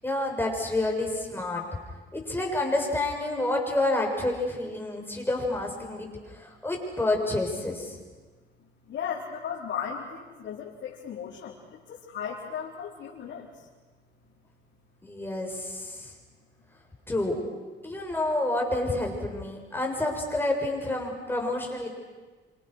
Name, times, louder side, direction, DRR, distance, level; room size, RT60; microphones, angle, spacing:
voice 1, 0.0-1.6 2.1-6.1 6.3-8.0 15.0-16.1 17.1-17.4 17.8-21.9, left 2 dB, 10° left, 1 dB, 7.5 m, -29 dB
voice 2, 8.9-13.7, left 7 dB, 70° left, -5 dB, 4.4 m, -36 dB
28.0 x 26.5 x 6.6 m, 1.3 s
cardioid pair, 90°, 20 cm